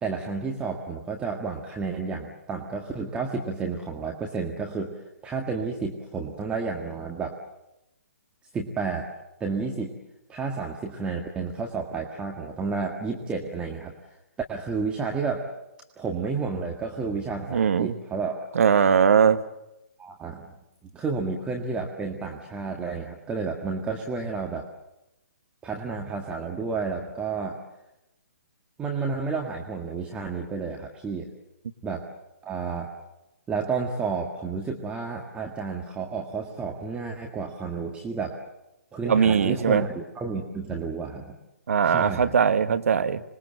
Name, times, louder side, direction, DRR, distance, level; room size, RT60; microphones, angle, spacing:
voice 1, 0.0-4.9 5.2-7.4 8.5-9.1 9.4-9.9 10.3-13.9 14.5-15.5 16.0-18.4 20.0-20.5 20.9-24.7 25.6-27.6 28.8-31.3 31.8-32.1 32.4-32.9 33.5-38.4 38.9-41.4 41.8-42.3, right 4 dB, 10° right, 1 dB, 1.8 m, -31 dB
voice 2, 17.5-17.9 18.5-19.4 39.0-39.8 41.7-43.2, right 7 dB, 60° right, 11 dB, 1.4 m, -20 dB
26.0 x 21.0 x 7.8 m, 0.91 s
figure-of-eight pair, 135°, 9 cm